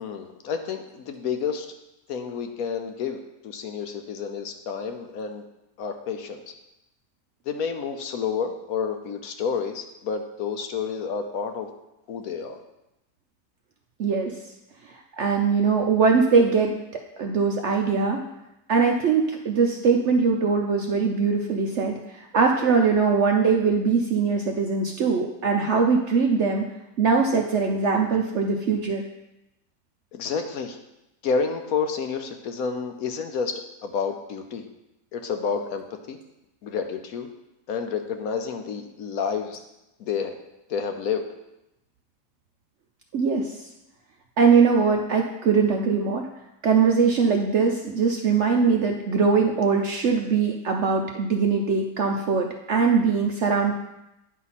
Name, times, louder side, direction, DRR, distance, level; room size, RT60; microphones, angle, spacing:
voice 1, 0.0-1.7 2.1-3.2 3.4-5.4 5.8-6.5 7.5-11.7 12.1-12.6 30.1-30.8 31.2-33.5 33.8-34.6 35.1-36.2 36.6-37.3 37.7-39.6 40.0-40.3 40.7-41.2, left 6 dB, 65° left, 6 dB, 1.0 m, -29 dB
voice 2, 14.0-14.3 15.2-16.7 17.2-18.2 18.7-26.6 27.0-29.0 43.1-43.7 44.4-46.2 46.6-53.7, right 5 dB, 60° right, 2 dB, 0.8 m, -21 dB
9.5 x 5.5 x 4.2 m, 0.91 s
omnidirectional pair, 1.8 m